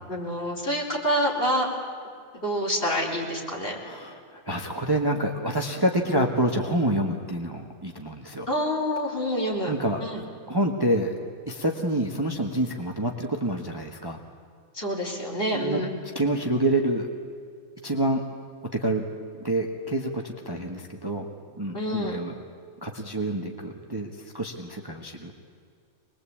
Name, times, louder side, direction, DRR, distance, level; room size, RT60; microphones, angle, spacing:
voice 1, 0.1-1.7 2.4-3.8 6.1-6.3 8.5-9.7 10.0-10.2 14.7-15.9 21.7-22.2, equal, 40° left, -2 dB, 4.6 m, -27 dB
voice 2, 3.8-8.5 9.7-10.0 10.5-11.1 11.4-14.2 15.5-15.8 16.1-17.1 17.8-18.2 18.7-19.0 19.4-21.3 21.5-22.3 22.8-25.3, right 1 dB, 15° right, 2 dB, 1.5 m, -27 dB
24.5 x 21.0 x 8.6 m, 2.2 s
omnidirectional pair, 1.5 m